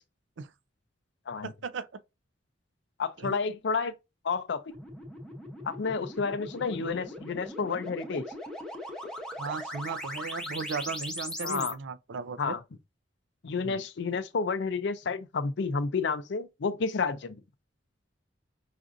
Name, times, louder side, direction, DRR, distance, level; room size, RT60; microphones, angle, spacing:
voice 1, 1.4-1.9 3.2-3.4 9.4-12.6 13.6-13.8, right 5 dB, 80° right, 0.5 m, -36 dB
voice 2, 3.0-3.9 4.2-4.7 5.6-8.2 11.4-11.8 12.4-12.6 13.4-17.3, left 5 dB, 65° left, 0.5 m, -30 dB
sound 1, 4.7-11.7, left 1 dB, 5° left, 0.8 m, -39 dB
5.8 x 2.5 x 2.5 m
head